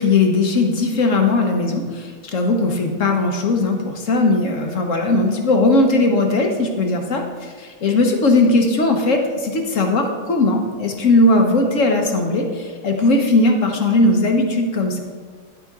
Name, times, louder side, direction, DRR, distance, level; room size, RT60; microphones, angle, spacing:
voice 1, 0.0-7.2 7.6-15.0, left 2 dB, 50° left, 3 dB, 1.1 m, -18 dB
10.5 x 8.4 x 3.6 m, 1.6 s
omnidirectional pair, 2.1 m